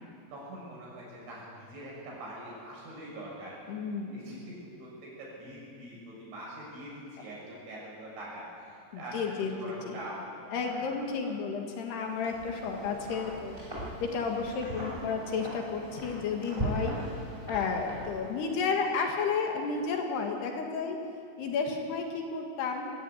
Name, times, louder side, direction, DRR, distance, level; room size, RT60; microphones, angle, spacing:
voice 1, 0.3-3.6 4.1-4.9 5.2-10.9 11.2-11.3, right 1 dB, 75° right, -4 dB, 9.0 m, -44 dB
voice 2, 3.7-4.4 8.9-9.9 10.5-13.6 14.0-17.0 17.5-21.0 21.4-22.9, left 5 dB, 65° left, 2 dB, 3.5 m, -32 dB
Wind, 12.0-18.5, right 1 dB, 10° right, 5.6 m, -39 dB
21.0 x 14.5 x 9.4 m, 2.5 s
omnidirectional pair, 5.4 m